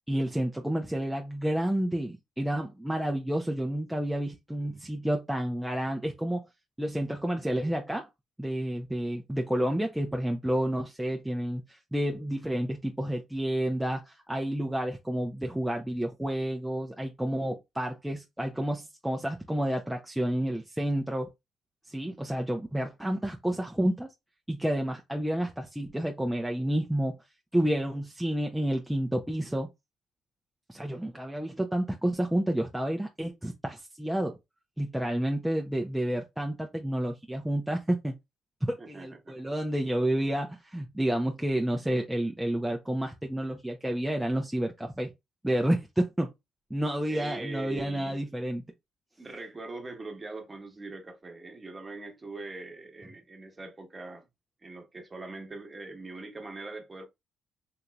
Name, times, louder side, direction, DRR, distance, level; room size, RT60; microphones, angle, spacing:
voice 1, 0.1-6.4 6.8-8.1 8.4-21.3 21.9-24.1 24.5-27.2 27.5-29.7 30.7-34.4 34.8-38.1 38.6-45.1 45.4-46.3 46.7-48.6, right 1 dB, 5° right, 0.6 m, -30 dB
voice 2, 38.8-39.4 47.1-48.3 49.2-54.3 54.6-57.1, right 3 dB, 30° right, 1.2 m, -42 dB
3.9 x 2.8 x 2.3 m
supercardioid pair, 60°, 0 cm